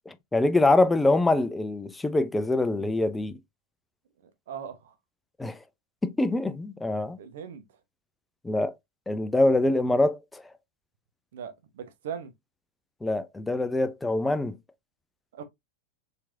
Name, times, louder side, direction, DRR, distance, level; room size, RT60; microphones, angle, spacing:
voice 1, 0.1-3.4 5.4-5.6 6.0-7.2 8.4-8.7 9.1-10.4 13.0-14.6, left 2 dB, 10° left, 0.5 m, -24 dB
voice 2, 4.5-4.9 7.2-7.6 11.3-12.3 15.3-15.4, right 7 dB, 55° right, 0.8 m, -39 dB
4.6 x 3.4 x 2.7 m
figure-of-eight pair, 90°, 0 cm